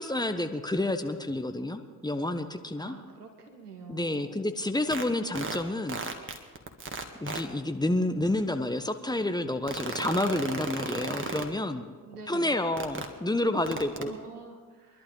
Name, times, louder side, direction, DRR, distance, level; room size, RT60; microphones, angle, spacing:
voice 1, 0.0-3.0 3.9-6.0 7.2-11.8 12.3-14.1, left 1 dB, 10° left, 8 dB, 1.2 m, -29 dB
voice 2, 2.7-4.4 12.0-12.6 14.0-15.0, right 5 dB, 85° right, 4 dB, 1.3 m, -46 dB
sound 1, 4.9-5.0 5.3-5.5 5.9-7.4 9.7-11.4 12.8-13.0 13.7-14.1, right 5 dB, 25° right, 1.8 m, -33 dB
23.5 x 12.0 x 3.9 m, 1.5 s
figure-of-eight pair, 40°, 45 cm